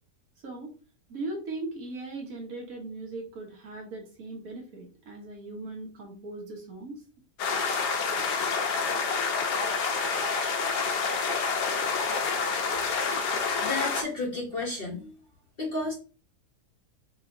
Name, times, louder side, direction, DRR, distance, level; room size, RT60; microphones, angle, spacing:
voice 1, 1.1-7.0, right 2 dB, 60° right, 0 dB, 1.5 m, -39 dB
sound 1, 7.4-14.0, left 5 dB, 90° left, 1.4 m, -28 dB
voice 2, 13.6-15.1 15.6-15.9, left 2 dB, 45° left, -1 dB, 0.9 m, -32 dB
5.4 x 3.0 x 2.6 m, 0.35 s
omnidirectional pair, 1.7 m